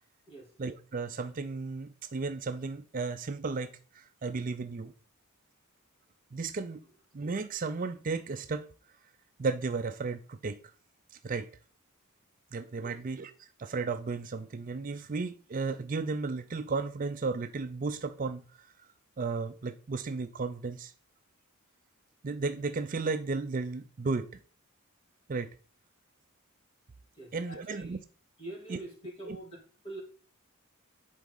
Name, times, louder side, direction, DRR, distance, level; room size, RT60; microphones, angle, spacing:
voice 1, 0.6-4.9 6.3-6.8 7.1-8.7 9.4-10.6 11.1-11.5 12.5-18.7 19.2-20.9 22.2-24.4 25.3-25.5 27.3-28.0 28.7-28.8 29.3-29.4, right 4 dB, 40° right, 0.4 m, -34 dB
voice 2, 27.2-28.0 28.4-29.6 29.8-30.0, right 2 dB, 25° left, 2.8 m, -44 dB
10.0 x 4.5 x 3.9 m
head